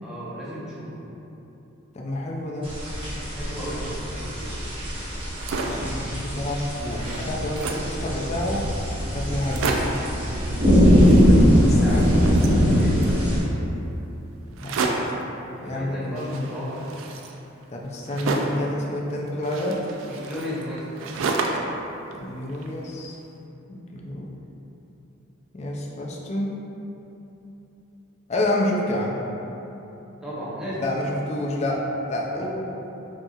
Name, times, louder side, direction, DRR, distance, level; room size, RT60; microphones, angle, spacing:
voice 1, 0.0-1.1 3.3-4.6 11.2-13.5 15.4-16.8 20.1-21.0 30.2-30.8 32.3-32.5, equal, 5° right, -10 dB, 0.7 m, -34 dB
voice 2, 1.9-2.8 5.6-8.6 9.1-9.7 11.6-12.2 14.6-15.0 15.6-16.4 17.7-19.8 22.1-23.2 23.7-24.3 25.5-26.6 28.3-29.2 30.8-32.5, left 1 dB, 30° left, -2 dB, 0.4 m, -28 dB
sound 1, 2.6-13.4, equal, 25° right, 0.9 m, -21 dB
sound 2, 5.2-5.9 6.4-6.5 6.7-8.0 8.6-8.7 8.9-9.0 9.3-10.1 10.8-11.6 11.9-13.2 14.5-15.2 16.2-18.7 19.4-21.8 22.1-23.0, right 3 dB, 75° right, 0.3 m, -31 dB
5.3 x 2.8 x 2.4 m, 3.0 s
head